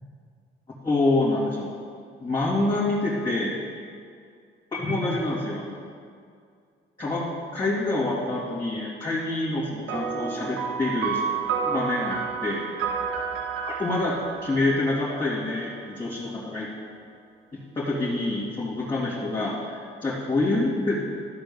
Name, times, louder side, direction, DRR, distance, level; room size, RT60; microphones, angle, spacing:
voice 1, 0.8-1.8 2.2-3.6 4.7-5.8 7.0-7.3 7.5-11.2 11.6-12.7 13.6-16.7 17.5-21.0, left 2 dB, 25° left, -9 dB, 2.4 m, -26 dB
sound 1, 9.9-15.7, right 6 dB, 80° right, 1.2 m, -30 dB
13.0 x 4.4 x 6.9 m, 2.2 s
cardioid pair, 90°, 20 cm